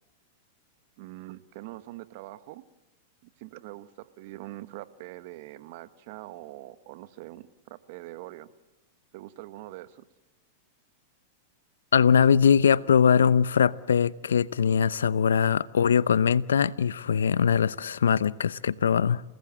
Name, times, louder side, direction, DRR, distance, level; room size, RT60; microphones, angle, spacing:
voice 1, 1.0-2.6 3.4-8.5 9.1-10.0, right 16 dB, 60° right, 1.4 m, -43 dB
voice 2, 11.9-19.2, left 7 dB, 90° left, 0.7 m, -22 dB
28.5 x 19.0 x 7.6 m
hypercardioid pair, 115°, 0 cm